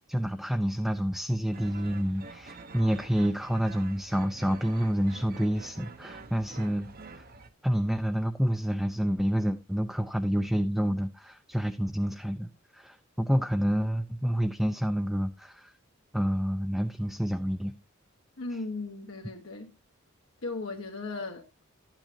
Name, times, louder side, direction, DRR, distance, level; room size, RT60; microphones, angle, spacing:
voice 1, 0.1-7.2 7.6-15.7 16.1-17.7 18.5-18.6, equal, ahead, 0.4 m, -28 dB
sound 1, 1.5-7.5, right 3 dB, 45° right, 0.8 m, -47 dB
voice 2, 18.4-19.7 20.4-21.6, left 3 dB, 70° left, 1.2 m, -37 dB
12.0 x 9.0 x 2.8 m
head